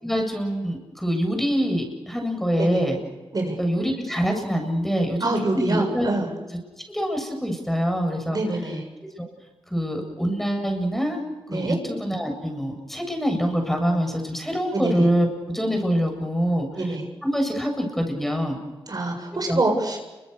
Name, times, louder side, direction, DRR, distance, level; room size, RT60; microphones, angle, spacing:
voice 1, 0.0-3.0 3.6-6.2 6.9-8.4 9.2-9.3 9.7-11.2 11.5-15.3 15.5-17.0 17.2-18.6 19.3-19.6, equal, 5° left, 3 dB, 7.8 m, -25 dB
voice 2, 5.2-6.3 8.3-8.8 11.5-11.8 14.7-15.1 16.8-17.0 18.9-20.0, right 2 dB, 45° right, 3 dB, 7.3 m, -25 dB
30.0 x 24.5 x 6.8 m, 1.2 s
cardioid pair, 65°, 9 cm